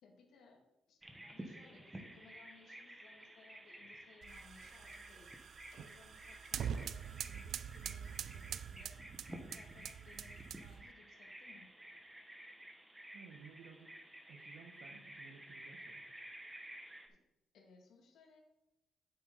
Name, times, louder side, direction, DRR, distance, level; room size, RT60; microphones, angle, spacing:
voice 1, 0.0-5.3 5.7-11.7 17.1-17.2 17.5-18.4, left 4 dB, 75° left, 1 dB, 2.2 m, -63 dB
Bird vocalization bird call bird song, 1.0-17.1, right 1 dB, 15° right, 1.3 m, -53 dB
sound 1, 4.2-10.9, right 8 dB, 65° right, 0.4 m, -45 dB
voice 2, 13.1-13.9 14.3-16.0, right 5 dB, 90° right, 6 dB, 1.2 m, -57 dB
8.5 x 7.0 x 4.1 m, 0.93 s
cardioid pair, 90°, 0 cm